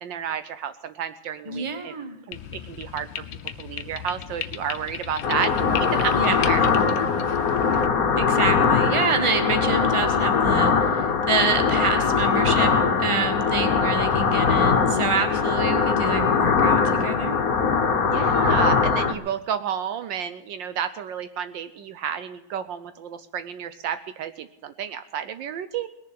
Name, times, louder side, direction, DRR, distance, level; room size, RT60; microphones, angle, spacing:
voice 1, 0.0-1.9 2.3-3.1 3.6-6.7 18.1-25.9, right 8 dB, 70° right, 11 dB, 1.3 m, -31 dB
voice 2, 1.4-2.2 6.1-6.4 8.1-12.7 13.0-17.4, right 3 dB, 15° right, 7 dB, 1.3 m, -27 dB
sound 1, 2.3-7.9, left 10 dB, 75° left, 1.5 m, -36 dB
sound 2, 5.2-19.1, left 5 dB, 50° left, 1.5 m, -21 dB
20.0 x 7.1 x 8.5 m, 0.89 s
omnidirectional pair, 2.2 m